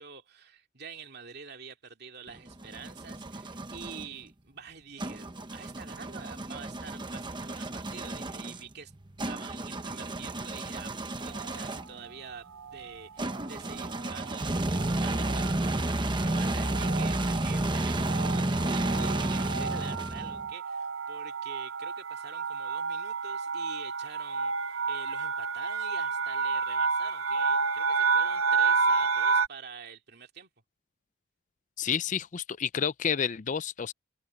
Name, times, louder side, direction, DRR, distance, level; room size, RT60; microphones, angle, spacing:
voice 1, 0.0-8.9 9.2-30.5, right 6 dB, 55° right, 2.6 m, -47 dB
sound 1, 2.3-4.1 5.0-12.0 13.2-20.5, right 1 dB, 25° right, 1.1 m, -32 dB
sound 2, 11.3-11.8 12.6-12.9 13.2-13.4 13.7-29.5, right 5 dB, 85° right, 0.8 m, -31 dB
voice 2, 31.8-33.9, left 7 dB, 40° left, 0.4 m, -30 dB
head